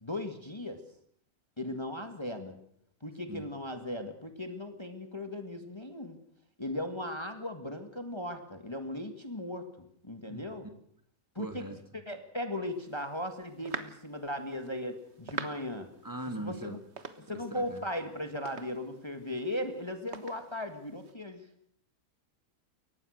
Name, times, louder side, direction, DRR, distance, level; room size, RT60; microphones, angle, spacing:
voice 1, 0.0-0.8 1.6-2.6 3.0-6.2 6.6-9.7 10.0-10.7 11.4-11.6 11.9-15.9 16.4-16.8 17.2-21.4, left 1 dB, 20° left, 6 dB, 1.9 m, -37 dB
voice 2, 10.3-10.7 11.4-11.8 16.0-16.8 17.5-17.8, right 1 dB, 15° right, 7 dB, 2.1 m, -40 dB
sound 1, 12.7-21.1, right 5 dB, 50° right, 1.7 m, -46 dB
23.0 x 19.5 x 6.5 m, 0.68 s
omnidirectional pair, 1.6 m